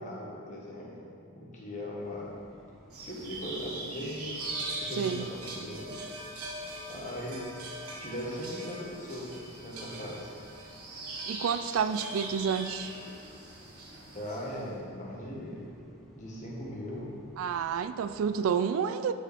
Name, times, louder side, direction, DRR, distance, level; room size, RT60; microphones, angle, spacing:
voice 1, 0.0-2.3 2.9-6.0 6.9-7.5 8.0-10.3 14.1-15.7 16.1-17.1, equal, 35° left, -4 dB, 1.5 m, -39 dB
sound 1, 2.0-18.5, equal, ahead, 0.9 m, -56 dB
sound 2, 2.9-14.6, right 2 dB, 80° right, 1.4 m, -41 dB
voice 2, 11.3-12.9 17.4-19.1, right 7 dB, 65° right, 10 dB, 0.3 m, -29 dB
12.5 x 5.0 x 3.5 m, 2.3 s
head